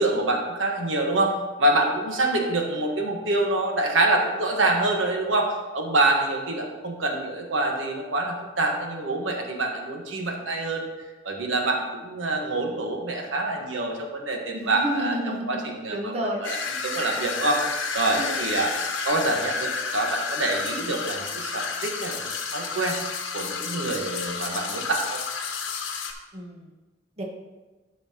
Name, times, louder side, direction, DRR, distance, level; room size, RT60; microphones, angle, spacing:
voice 1, 0.0-10.9 11.2-16.1 16.4-16.6 16.8-17.6 17.9-18.7 19.0-23.0 23.3-25.2, right 2 dB, 90° right, 2 dB, 1.2 m, -26 dB
voice 2, 14.5-15.6 15.9-16.5 18.2-18.4 26.3-26.7 27.2-27.3, equal, 35° right, 0 dB, 0.9 m, -30 dB
sound 1, 16.4-26.1, left 5 dB, 75° left, 0.9 m, -31 dB
12.0 x 5.6 x 2.9 m, 1.2 s
head